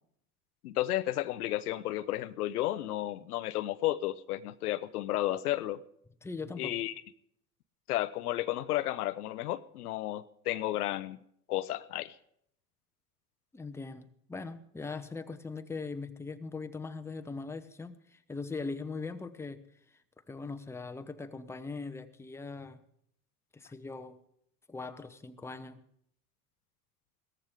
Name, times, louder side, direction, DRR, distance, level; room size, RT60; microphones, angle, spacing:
voice 1, 0.6-5.8 6.6-6.9 7.9-11.2 11.5-12.1, left 15 dB, 80° left, 16 dB, 0.6 m, -32 dB
voice 2, 6.2-6.7 13.5-19.6 20.3-22.8 23.5-24.2 24.7-25.8, left 4 dB, 5° left, 9 dB, 0.8 m, -40 dB
16.5 x 14.0 x 3.6 m, 0.72 s
hypercardioid pair, 80°, 45 cm